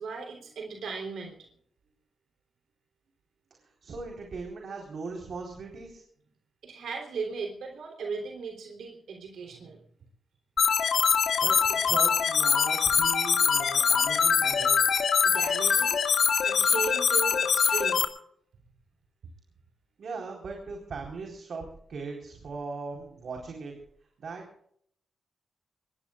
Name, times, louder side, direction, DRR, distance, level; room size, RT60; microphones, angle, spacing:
voice 1, 0.0-1.4 6.6-9.8 15.2-16.0 16.4-18.0, right 5 dB, 90° right, 1 dB, 3.4 m, -37 dB
voice 2, 3.8-6.0 11.2-14.8 20.0-23.7 24.2-24.5, right 4 dB, 65° right, 1 dB, 4.1 m, -39 dB
sound 1, 10.6-18.0, left 6 dB, 75° left, 1.9 m, -23 dB
24.5 x 22.0 x 2.4 m, 0.67 s
cardioid pair, 90°, 0 cm